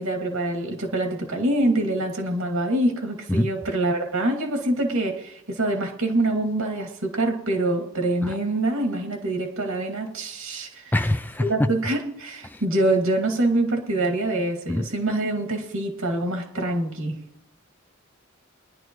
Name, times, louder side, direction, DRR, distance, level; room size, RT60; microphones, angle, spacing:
voice 1, 0.0-10.9 11.4-17.2, right 2 dB, 80° right, 1 dB, 2.4 m, -25 dB
voice 2, 10.9-11.5 12.4-12.6 14.7-14.9, left 1 dB, 10° left, 9 dB, 0.4 m, -24 dB
22.5 x 11.0 x 3.1 m, 0.79 s
head